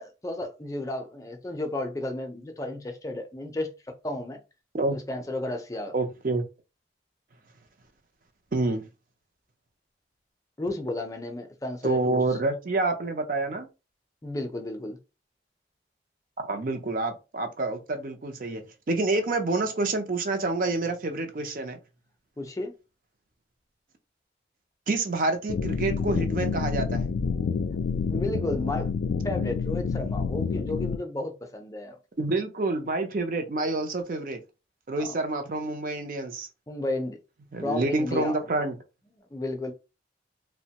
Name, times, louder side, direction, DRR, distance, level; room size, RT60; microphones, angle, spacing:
voice 1, 0.0-4.4 4.9-5.9 10.6-12.2 14.2-15.0 22.4-22.7 28.1-28.9 29.2-32.0 35.0-35.2 36.7-37.2 37.6-38.5 39.3-39.7, left 2 dB, 20° left, 0.4 m, -33 dB
voice 2, 5.9-6.4 8.5-8.8 11.8-13.7 16.4-21.8 24.9-27.1 32.2-34.4 34.9-36.5 37.5-38.8, right 2 dB, 50° right, 0.5 m, -28 dB
sound 1, 25.5-31.0, left 5 dB, 90° left, 0.3 m, -28 dB
2.9 x 2.1 x 2.8 m
head